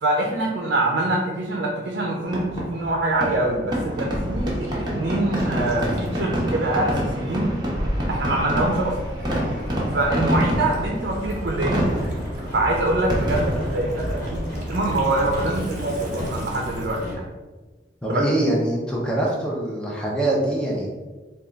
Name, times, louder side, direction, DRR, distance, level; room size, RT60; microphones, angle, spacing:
voice 1, 0.0-7.5 8.1-9.0 9.9-11.8 12.5-17.2 18.1-18.2, right 2 dB, 65° right, -1 dB, 0.5 m, -24 dB
Fireworks, 2.3-15.8, equal, 25° right, 0.8 m, -27 dB
Gurgling / Liquid, 4.5-17.1, equal, 45° right, 1.2 m, -35 dB
sound 1, 8.2-17.1, equal, 50° left, 1.2 m, -37 dB
voice 2, 18.0-20.9, right 1 dB, 5° left, -3 dB, 0.6 m, -23 dB
3.5 x 2.3 x 3.8 m, 1.2 s
head